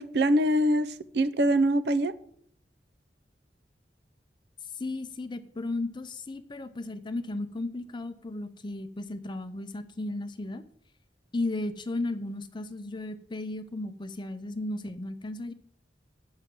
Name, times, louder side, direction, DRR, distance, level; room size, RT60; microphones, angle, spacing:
voice 1, 0.0-2.1, right 1 dB, 65° right, 13 dB, 0.5 m, -24 dB
voice 2, 4.8-10.6 11.3-15.5, left 2 dB, 25° left, 10 dB, 0.6 m, -35 dB
7.5 x 5.6 x 7.6 m, 0.66 s
head